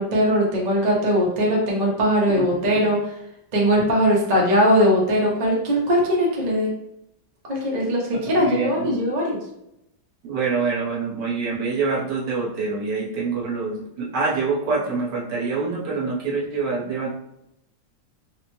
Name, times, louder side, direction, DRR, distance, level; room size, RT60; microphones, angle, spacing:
voice 1, 0.0-3.2 3.5-6.7 7.5-9.4, equal, 80° right, -3 dB, 0.3 m, -20 dB
voice 2, 8.4-9.0 10.2-17.1, right 4 dB, 65° right, -4 dB, 1.4 m, -25 dB
4.0 x 2.1 x 2.9 m, 0.81 s
omnidirectional pair, 2.1 m